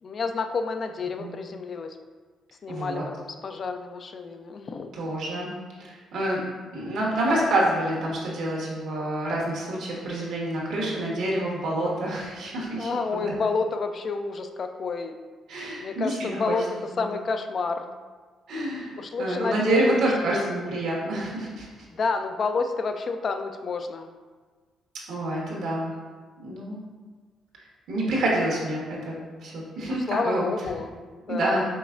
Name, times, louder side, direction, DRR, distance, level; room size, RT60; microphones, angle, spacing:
voice 1, 0.0-2.0 2.6-4.9 10.8-11.1 12.8-15.1 15.8-16.7 17.0-18.0 19.0-19.9 20.3-20.4 21.9-24.1 29.8-31.6, left 4 dB, 50° left, 6 dB, 0.3 m, -29 dB
voice 2, 2.7-3.0 4.9-6.4 6.7-13.3 15.5-16.6 16.9-17.1 18.5-21.9 25.1-25.9 26.4-26.8 27.6-30.4 31.3-31.6, right 1 dB, 80° right, -4 dB, 1.2 m, -28 dB
5.2 x 3.4 x 2.5 m, 1.4 s
cardioid pair, 90°, 0 cm